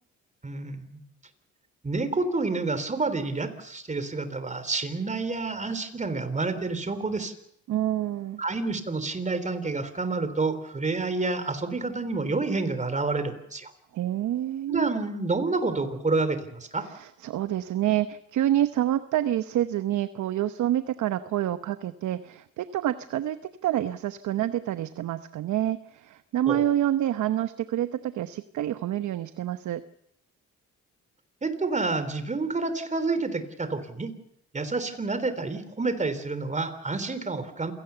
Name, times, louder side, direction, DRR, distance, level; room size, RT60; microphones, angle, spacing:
voice 1, 0.4-1.0 1.8-7.3 8.4-13.7 14.7-16.9 26.5-26.7 31.4-34.1 34.5-37.7, right 3 dB, 25° right, 11 dB, 3.5 m, -29 dB
voice 2, 7.7-8.4 13.9-14.9 16.8-29.8, right 12 dB, 75° right, 11 dB, 1.0 m, -27 dB
27.5 x 17.5 x 6.9 m, 0.75 s
cardioid pair, 90°, 30 cm